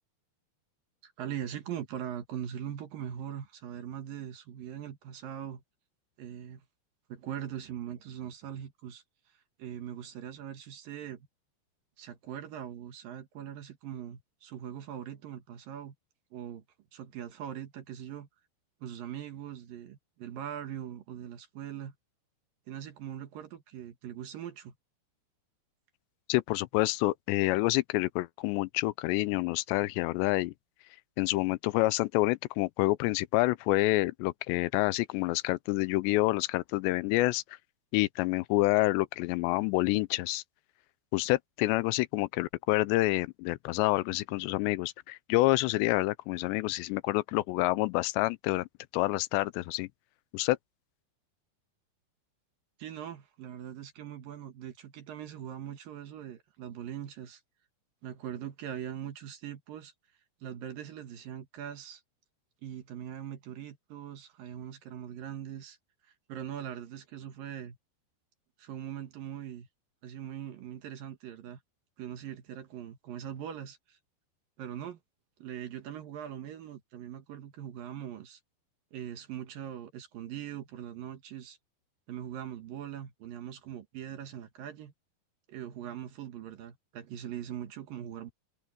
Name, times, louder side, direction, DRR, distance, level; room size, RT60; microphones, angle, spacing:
voice 1, 1.0-5.6 6.2-6.6 7.1-9.0 9.6-11.3 12.0-15.9 16.3-16.6 16.9-18.3 18.8-21.9 22.7-24.7 52.8-57.4 58.0-59.9 60.4-62.0 62.6-65.8 66.3-67.8 68.6-69.7 70.0-71.6 72.0-74.0 74.6-75.0 75.4-78.4 78.9-81.6 82.1-84.9 85.5-88.3, right 10 dB, 65° right, 2.9 m, -41 dB
voice 2, 26.3-30.5 31.2-37.4 37.9-40.4 41.1-48.7 48.9-49.9 50.3-50.6, left 20 dB, 85° left, 2.8 m, -28 dB
omnidirectional pair, 4.9 m